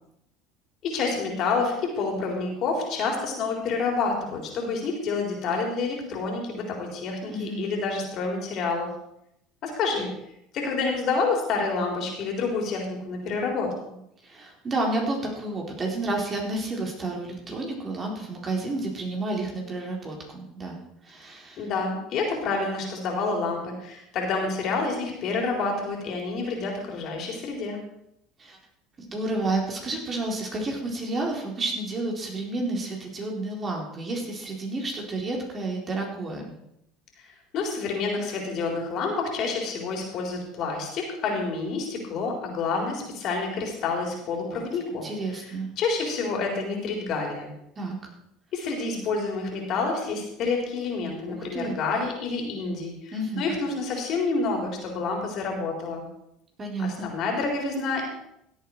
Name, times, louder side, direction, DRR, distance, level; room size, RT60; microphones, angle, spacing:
voice 1, 0.8-8.9 9.6-10.1 10.5-13.7 21.6-27.8 37.5-45.1 45.8-47.5 48.5-56.1 56.8-58.1, left 4 dB, 55° left, 1 dB, 4.0 m, -28 dB
voice 2, 7.3-7.7 14.2-21.7 28.4-28.6 29.0-36.5 44.4-44.6 45.0-45.7 47.8-47.9 51.3-51.8 53.1-53.6 56.6-57.1, right 2 dB, 30° right, 0 dB, 4.0 m, -31 dB
16.0 x 8.4 x 4.8 m, 0.78 s
supercardioid pair, 90°, 0 cm